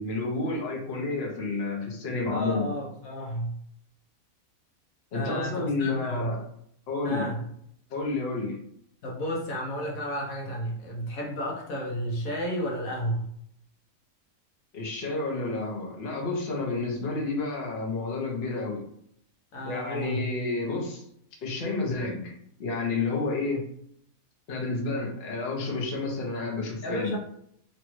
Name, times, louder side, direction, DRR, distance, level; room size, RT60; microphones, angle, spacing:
voice 1, 0.0-2.7 5.1-6.4 6.9-7.3 7.9-8.6 14.7-18.8 19.6-21.1 21.4-22.3 22.6-23.6 24.5-27.2, left 3 dB, 50° left, -1 dB, 0.9 m, -30 dB
voice 2, 2.3-3.5 5.1-6.3 7.0-7.4 9.0-13.2 19.5-20.2 26.8-27.2, equal, 75° left, -1 dB, 1.1 m, -32 dB
3.1 x 2.4 x 3.0 m, 0.69 s
omnidirectional pair, 1.5 m